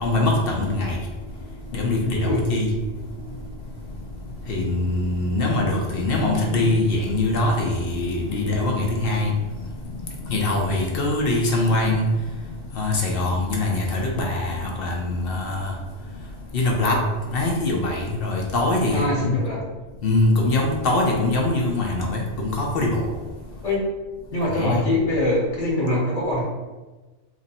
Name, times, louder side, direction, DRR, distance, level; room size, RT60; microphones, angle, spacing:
voice 1, 0.0-1.0 1.7-2.7 4.5-9.3 10.0-12.1 12.8-15.7 16.5-17.0 17.3-19.4 20.0-23.1 24.5-24.8, left 2 dB, 60° left, 0 dB, 0.7 m, -23 dB
voice 2, 18.9-19.6 23.6-23.9 24.3-26.4, left 1 dB, 80° left, -5 dB, 1.4 m, -23 dB
3.1 x 2.6 x 4.0 m, 1.2 s
omnidirectional pair, 1.2 m